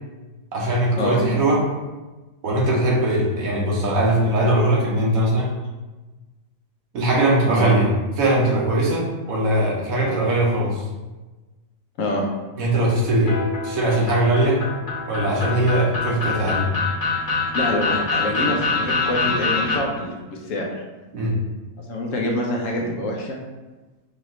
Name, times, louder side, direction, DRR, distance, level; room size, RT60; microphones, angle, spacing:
voice 1, 0.5-1.6 2.4-5.5 6.9-7.9 8.2-10.8 12.6-13.4 13.6-14.6 15.1-16.7 21.1-21.4, right 1 dB, 80° right, -3 dB, 1.3 m, -20 dB
sound 1, 13.3-19.8, left 4 dB, 40° left, 1.1 m, -25 dB
voice 2, 17.5-20.8 21.9-23.4, left 1 dB, 70° left, 0 dB, 1.1 m, -26 dB
4.9 x 2.5 x 3.0 m, 1.2 s
omnidirectional pair, 1.5 m